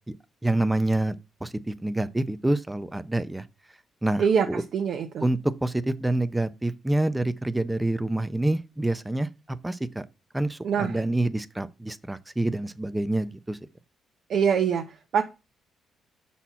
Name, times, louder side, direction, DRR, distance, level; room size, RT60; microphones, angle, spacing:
voice 1, 0.4-1.1 1.4-3.4 4.0-4.6 5.2-9.3 9.6-10.0 10.3-13.6, right 1 dB, 10° right, 0.6 m, -27 dB
voice 2, 4.2-5.3 10.6-11.0 14.3-15.2, right 7 dB, 65° right, 0.7 m, -24 dB
5.9 x 4.2 x 5.6 m
cardioid pair, 90°, 0 cm